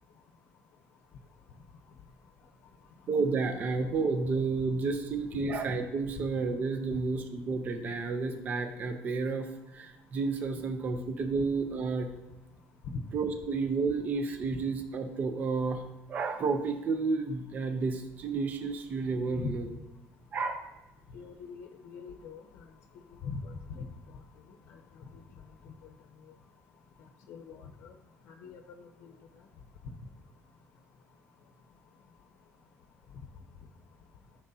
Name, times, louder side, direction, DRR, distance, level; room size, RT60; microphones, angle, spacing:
voice 1, 3.1-12.1 13.1-15.8 16.1-19.7 20.3-20.7, right 4 dB, 30° right, 6 dB, 0.7 m, -31 dB
voice 2, 21.1-22.4 23.2-23.8 27.3-27.6 27.8-27.9 28.4-29.1, left 5 dB, 60° left, 3 dB, 0.8 m, -41 dB
13.5 x 6.1 x 2.8 m, 0.99 s
cardioid pair, 170°, 5 cm